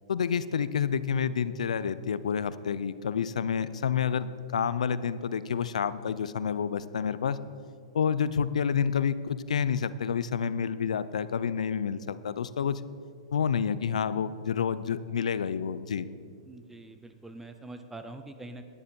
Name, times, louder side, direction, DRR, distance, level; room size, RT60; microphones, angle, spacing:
voice 1, 0.1-7.4 7.9-12.8 13.3-16.1, left 7 dB, 90° left, 15 dB, 0.5 m, -29 dB
voice 2, 16.5-18.7, right 2 dB, 5° right, 8 dB, 0.5 m, -44 dB
10.0 x 9.5 x 5.3 m, 2.2 s
hypercardioid pair, 140°, 4 cm